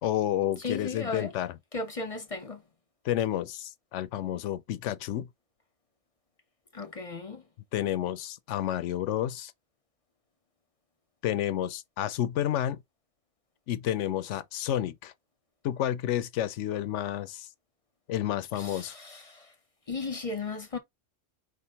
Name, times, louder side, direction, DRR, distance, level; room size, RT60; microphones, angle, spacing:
voice 1, 0.0-1.5 3.0-5.3 7.7-9.5 11.2-12.8 13.7-15.1 15.6-17.5 18.1-19.0, left 12 dB, 75° left, 0.9 m, -30 dB
voice 2, 0.6-1.3 1.7-2.6 6.7-7.4 18.5-19.5 19.9-20.8, left 3 dB, 35° left, 0.7 m, -36 dB
4.9 x 3.3 x 2.8 m
omnidirectional pair, 1.3 m